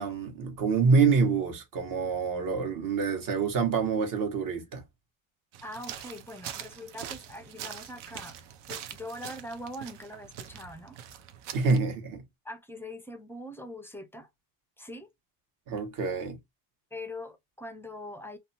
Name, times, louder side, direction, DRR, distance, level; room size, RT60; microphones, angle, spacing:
voice 1, 0.0-4.8 11.5-12.2 15.7-16.4, right 5 dB, 50° right, 1.2 m, -26 dB
sound 1, 5.5-11.8, right 9 dB, 85° right, 0.7 m, -43 dB
voice 2, 5.6-8.4 8.7-11.0 11.6-11.7 12.4-14.3 14.8-15.1 16.9-18.4, left 1 dB, 5° left, 0.3 m, -42 dB
2.7 x 2.2 x 2.7 m
supercardioid pair, 105°, 43 cm